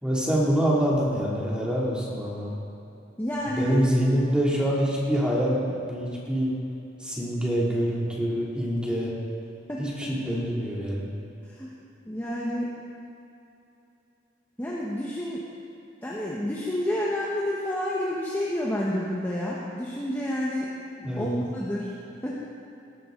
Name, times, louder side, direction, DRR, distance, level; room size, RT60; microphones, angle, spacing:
voice 1, 0.0-2.5 3.5-6.5 7.0-9.1 9.8-11.1 21.0-21.3, equal, 5° right, -6 dB, 2.9 m, -25 dB
voice 2, 3.2-3.9 9.7-10.1 11.4-11.7 12.0-12.7 14.6-15.4 16.0-20.7 21.2-21.9 22.2-22.3, left 1 dB, 10° left, -6 dB, 1.3 m, -29 dB
18.0 x 12.5 x 4.0 m, 2.8 s
head